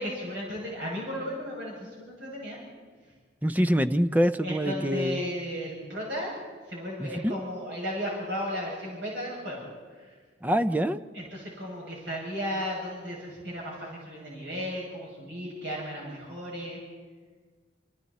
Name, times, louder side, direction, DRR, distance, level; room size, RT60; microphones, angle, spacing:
voice 1, 0.0-2.6 4.4-6.3 6.7-9.7 11.1-16.8, equal, 80° right, -4 dB, 7.1 m, -35 dB
voice 2, 3.4-5.2 7.0-7.3 10.4-11.0, equal, 10° right, 11 dB, 0.6 m, -25 dB
28.0 x 28.0 x 4.3 m, 1.5 s
head